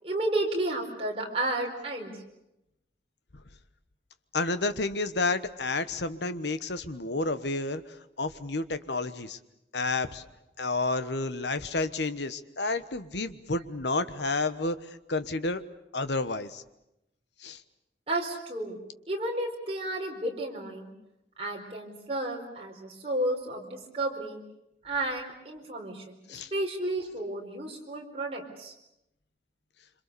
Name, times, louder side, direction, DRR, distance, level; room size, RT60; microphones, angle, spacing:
voice 1, 0.0-2.1 18.1-18.8 19.1-20.9 21.4-24.4 24.8-28.7, right 1 dB, 30° right, 0 dB, 4.5 m, -32 dB
voice 2, 4.3-7.8 8.2-9.4 9.7-10.2 10.6-14.8 15.1-15.6 15.9-16.6 17.4-17.6 26.3-26.5, left 3 dB, 75° left, 12 dB, 1.3 m, -30 dB
26.5 x 25.5 x 6.9 m, 0.87 s
head